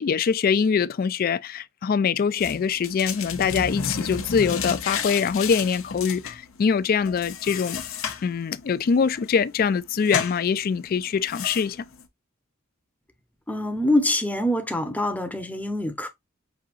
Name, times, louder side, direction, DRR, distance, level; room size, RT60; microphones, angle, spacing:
voice 1, 0.0-7.8 8.2-11.9, left 6 dB, 45° left, 0.3 m, -23 dB
sound 1, 2.4-12.0, left 6 dB, 75° left, 0.8 m, -33 dB
voice 2, 13.5-16.1, left 1 dB, 10° left, 0.7 m, -25 dB
6.1 x 2.8 x 2.5 m
head